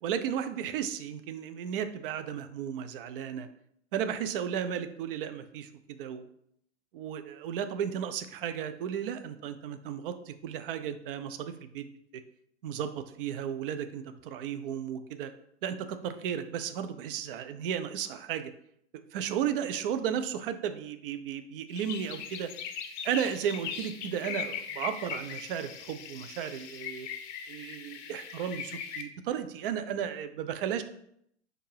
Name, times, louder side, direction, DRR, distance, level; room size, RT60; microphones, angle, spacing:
voice 1, 0.0-3.5 3.9-6.3 6.9-11.9 12.1-12.2 12.6-15.3 15.6-18.5 19.1-22.5 23.0-27.1 27.5-30.8, right 8 dB, 50° right, 10 dB, 0.5 m, -34 dB
sound 1, 21.7-29.0, left 8 dB, 40° left, 0.6 m, -40 dB
4.4 x 2.6 x 4.7 m, 0.72 s
figure-of-eight pair, 100°, 36 cm